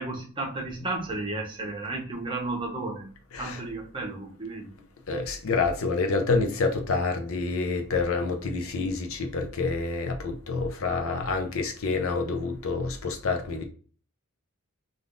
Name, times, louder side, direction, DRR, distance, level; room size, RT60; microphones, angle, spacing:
voice 1, 0.0-3.1 3.4-4.7, right 2 dB, 20° right, 0.8 m, -33 dB
voice 2, 5.1-13.6, left 3 dB, 65° left, 0.5 m, -28 dB
3.4 x 2.5 x 2.4 m
head